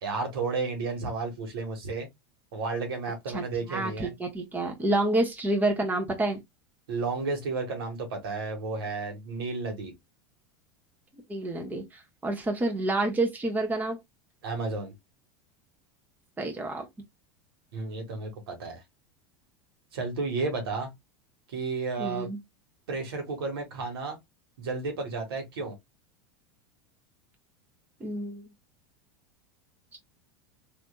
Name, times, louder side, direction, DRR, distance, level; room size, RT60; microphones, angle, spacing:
voice 1, 0.0-2.1 2.5-4.1 6.9-9.9 14.4-14.9 17.7-18.8 19.9-20.9 21.5-22.3 22.9-24.2 24.6-25.7, right 3 dB, 85° right, 1.5 m, -32 dB
voice 2, 3.7-6.4 11.3-14.0 16.4-16.8 22.0-22.4 28.0-28.5 29.9-30.0, right 2 dB, 15° right, 1.1 m, -28 dB
3.4 x 2.9 x 2.2 m
supercardioid pair, 115°, 12 cm